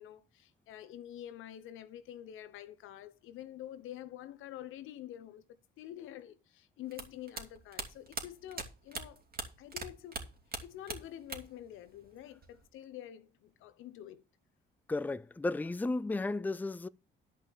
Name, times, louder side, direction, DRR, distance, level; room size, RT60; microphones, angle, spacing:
voice 1, 0.0-9.2 9.6-10.3 10.6-14.2, left 12 dB, 90° left, 1.0 m, -47 dB
sound 1, 6.9-9.9 10.1-11.6 11.9-12.7, right 4 dB, 50° right, 2.7 m, -41 dB
voice 2, 14.9-16.9, left 2 dB, 10° left, 0.4 m, -34 dB
12.0 x 5.4 x 7.3 m
cardioid pair, 90°, 20 cm